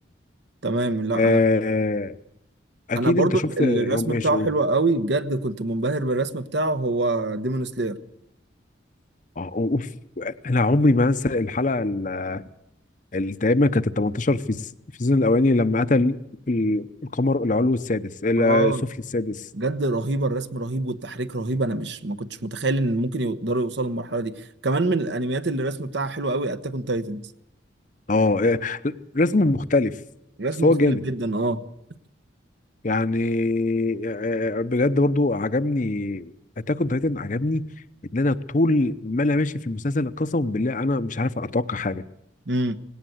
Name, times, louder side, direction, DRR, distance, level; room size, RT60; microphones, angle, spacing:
voice 1, 0.6-1.4 3.0-8.0 18.4-18.8 19.5-27.3 30.4-31.7 42.5-42.8, right 2 dB, 65° right, 1.1 m, -25 dB
voice 2, 1.1-2.2 2.9-4.5 9.4-9.9 10.2-12.4 13.1-14.7 15.0-16.2 16.5-16.9 17.1-18.7 19.1-19.5 28.1-30.0 30.6-31.1 32.8-36.3 36.7-37.6 38.1-42.0, left 2 dB, 40° left, 0.7 m, -22 dB
18.5 x 17.5 x 7.9 m
head